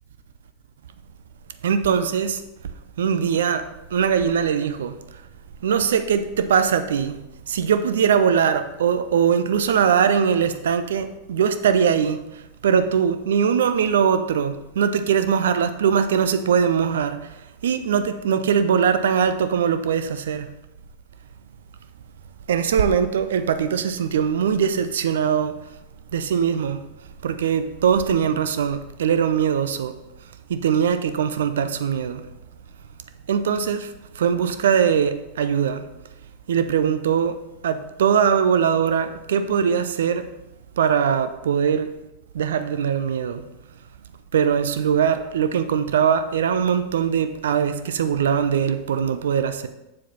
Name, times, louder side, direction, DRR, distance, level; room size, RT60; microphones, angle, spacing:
voice 1, 1.6-2.4 3.0-5.2 5.6-7.2 7.5-20.5 22.5-25.6 26.1-26.8 27.2-29.9 30.5-32.2 33.3-35.8 36.5-40.3 40.8-41.9 42.3-43.4 44.3-49.7, right 7 dB, 60° right, 0.6 m, -21 dB
7.3 x 7.3 x 4.3 m
figure-of-eight pair, 90°, 0 cm